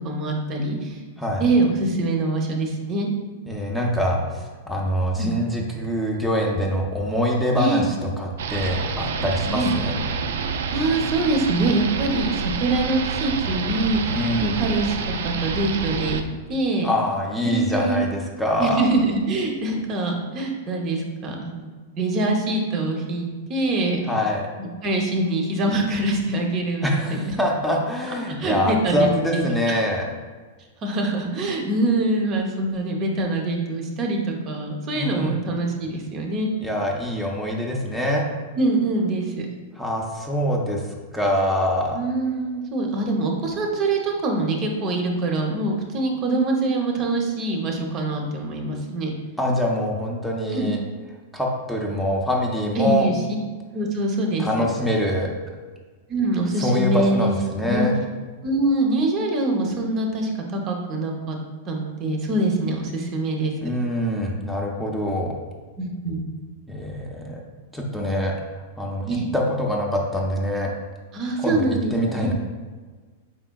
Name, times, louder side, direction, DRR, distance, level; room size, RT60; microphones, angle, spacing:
voice 1, 0.0-1.0 1.4-3.1 5.2-5.6 7.6-7.8 9.5-9.7 10.7-14.9 15.2-16.2 16.5-16.9 17.4-18.0 18.6-24.0 24.6-27.3 28.4-29.5 30.8-36.5 38.6-39.5 41.9-49.1 50.5-50.7 52.8-53.2 53.7-54.6 56.1-57.3 57.6-57.9 58.4-61.4 61.7-63.5 65.8-66.3 69.0-69.3 71.1-72.3, right 2 dB, 35° right, 2 dB, 0.7 m, -24 dB
voice 2, 3.5-10.0 14.1-14.6 16.8-18.9 24.1-24.5 26.8-30.1 34.9-35.4 36.6-38.2 39.8-40.8 41.1-42.0 49.4-50.8 51.3-53.1 54.4-55.3 56.6-58.0 63.6-65.3 66.7-67.4 67.7-70.7 71.4-71.6 71.9-72.3, left 1 dB, 5° left, -2 dB, 0.5 m, -24 dB
sound 1, 8.4-16.2, right 5 dB, 75° right, 0.3 m, -27 dB
4.8 x 3.4 x 2.2 m, 1.4 s
hypercardioid pair, 125°, 0 cm